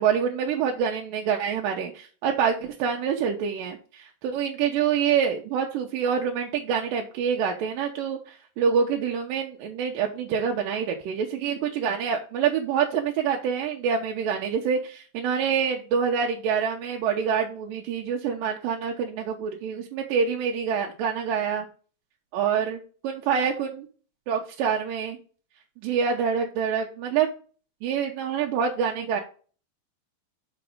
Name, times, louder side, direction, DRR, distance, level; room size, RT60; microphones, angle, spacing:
voice 1, 0.0-21.7 22.3-23.9 24.3-25.2 25.8-27.3 27.8-29.2, right 7 dB, 80° right, 1 dB, 2.3 m, -26 dB
6.1 x 5.7 x 3.5 m, 0.40 s
omnidirectional pair, 4.1 m